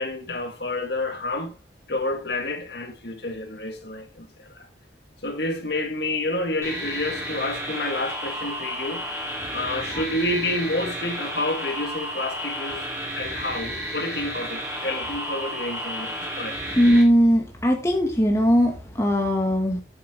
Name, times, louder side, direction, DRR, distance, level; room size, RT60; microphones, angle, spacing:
voice 1, 0.0-1.6 1.9-4.7 5.2-9.0 9.5-16.6, left 2 dB, 60° left, 1.8 m, -29 dB
sound 1, 6.6-17.0, equal, 15° right, 2.9 m, -32 dB
voice 2, 16.8-19.8, equal, 15° left, 2.0 m, -19 dB
10.5 x 7.9 x 3.7 m
head